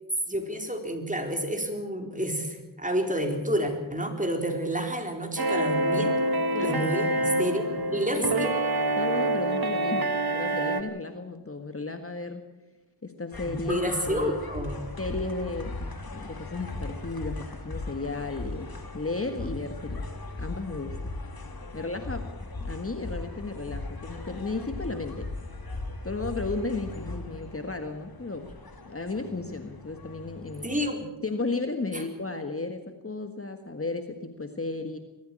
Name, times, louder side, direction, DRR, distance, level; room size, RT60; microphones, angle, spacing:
voice 1, 0.3-6.1 6.6-8.5 13.4-14.8 30.6-31.0 31.9-32.0, right 1 dB, 15° right, 4 dB, 4.2 m, -29 dB
sound 1, 5.4-10.8, right 2 dB, 50° right, 1.6 m, -26 dB
voice 2, 6.5-7.3 8.2-8.5 9.0-12.4 13.0-14.4 15.0-20.1 20.4-21.1 21.7-22.3 22.6-25.3 26.0-28.5 28.8-30.7 31.0-35.0, left 3 dB, 25° left, 7 dB, 1.7 m, -34 dB
sound 2, 13.3-30.9, left 2 dB, 45° left, 3.2 m, -38 dB
22.0 x 14.5 x 8.8 m, 1.1 s
cardioid pair, 60°, 48 cm